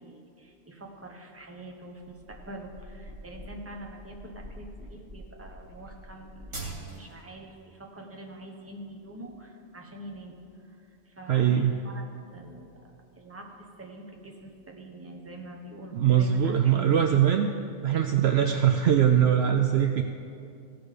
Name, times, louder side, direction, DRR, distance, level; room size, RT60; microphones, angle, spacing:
voice 1, 0.0-10.4 11.1-12.8 13.2-13.5 13.8-17.2 19.8-20.0, right 1 dB, 10° right, 1 dB, 0.9 m, -44 dB
sound 1, 2.0-7.2, right 2 dB, 85° right, 3.0 m, -43 dB
voice 2, 11.3-11.8 15.9-17.5 17.8-20.0, right 9 dB, 65° right, 5 dB, 0.7 m, -22 dB
16.5 x 5.9 x 5.0 m, 2.5 s
omnidirectional pair, 1.3 m